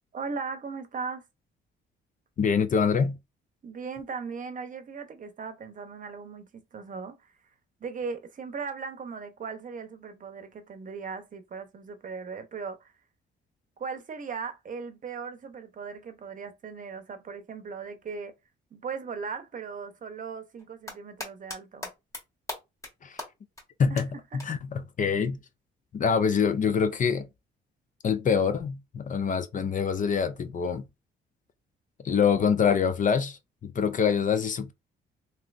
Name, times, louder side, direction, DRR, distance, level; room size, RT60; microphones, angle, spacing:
voice 1, 0.1-1.2 3.6-7.3 7.8-12.9 13.8-18.3 18.7-21.9 23.9-24.0, right 5 dB, 40° right, 0.7 m, -38 dB
voice 2, 2.4-3.2 23.0-23.2 23.8-25.4 25.9-27.3 28.0-30.8 32.0-34.7, left 6 dB, 40° left, 0.5 m, -25 dB
sound 1, 20.6-21.6 21.8-22.2 22.5-22.9 23.2-23.3 23.6-23.7 24.0-24.1 24.4-24.5 26.0-26.1, left 1 dB, 15° left, 1.7 m, -37 dB
3.2 x 2.8 x 2.4 m
cardioid pair, 90°, 20 cm